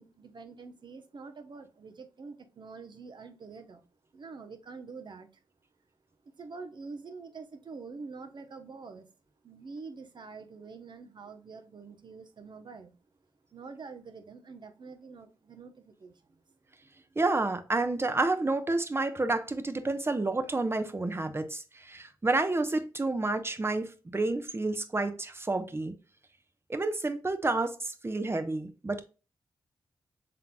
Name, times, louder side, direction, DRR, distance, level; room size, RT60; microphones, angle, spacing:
voice 1, 0.0-3.9 4.1-5.4 6.2-9.1 9.4-13.0 13.5-16.2, right 4 dB, 60° right, 0.9 m, -46 dB
voice 2, 17.2-25.9 26.7-29.0, right 2 dB, 25° right, 0.8 m, -30 dB
5.9 x 3.8 x 2.2 m
cardioid pair, 50°, 9 cm